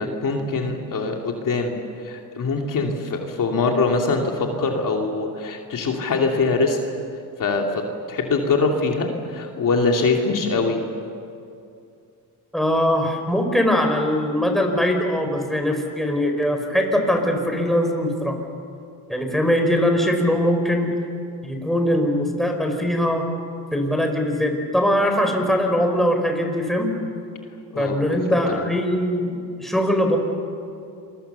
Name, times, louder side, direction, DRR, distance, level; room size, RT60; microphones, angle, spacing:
voice 1, 0.0-6.8 7.4-10.8 27.7-28.0 28.3-28.7, left 3 dB, 55° left, 1 dB, 2.9 m, -23 dB
voice 2, 12.5-18.4 19.1-20.9 21.4-23.3 23.7-26.9 27.8-30.2, equal, ahead, 3 dB, 4.9 m, -21 dB
28.0 x 23.5 x 6.9 m, 2.5 s
cardioid pair, 90°, 39 cm